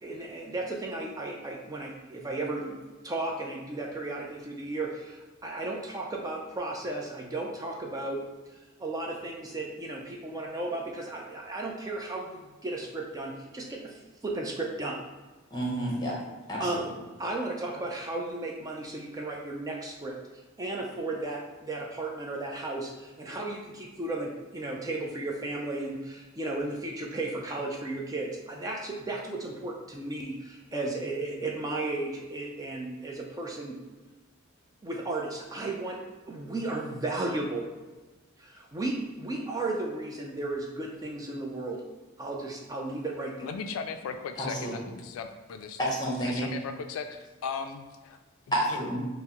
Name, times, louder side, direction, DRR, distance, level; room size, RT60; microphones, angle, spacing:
voice 1, 0.0-2.8 3.0-8.2 8.5-15.0 16.6-16.8 17.2-20.2 20.6-33.8 34.8-36.0 36.3-37.6 38.4-41.8 42.2-43.5, right 2 dB, 15° right, -1 dB, 0.3 m, -34 dB
voice 2, 15.5-16.2 16.5-16.8 44.4-44.8 45.9-46.5 48.5-49.0, right 1 dB, 20° left, -3 dB, 0.9 m, -30 dB
voice 3, 43.4-45.3 46.2-48.2, left 6 dB, 80° left, 7 dB, 0.3 m, -37 dB
5.6 x 2.0 x 2.9 m, 1.2 s
head